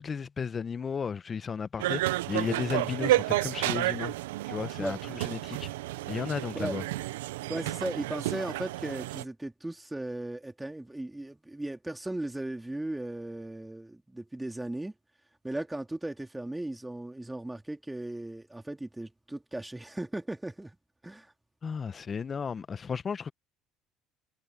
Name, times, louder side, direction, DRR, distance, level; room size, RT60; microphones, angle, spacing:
voice 1, 0.0-4.1 4.5-5.7 6.1-6.8 21.6-23.3, left 6 dB, 35° left, 1.2 m, -34 dB
sound 1, 1.8-9.2, right 17 dB, 85° right, 0.7 m, -31 dB
voice 2, 7.5-14.9 15.4-20.8 21.0-21.3, right 1 dB, 10° right, 3.3 m, -37 dB
hypercardioid pair, 75°, 0 cm